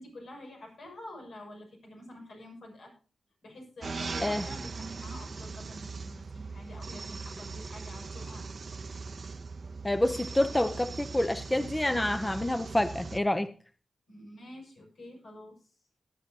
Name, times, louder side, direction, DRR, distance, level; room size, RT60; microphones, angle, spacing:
voice 1, 0.0-2.9 3.4-8.4 14.1-15.6, left 1 dB, 85° left, 0 dB, 6.5 m, -47 dB
sound 1, 3.8-13.2, right 4 dB, 55° right, 0.7 m, -40 dB
voice 2, 9.8-13.5, left 1 dB, 15° left, 11 dB, 0.8 m, -28 dB
18.0 x 10.0 x 2.9 m, 0.36 s
cardioid pair, 80°, 0 cm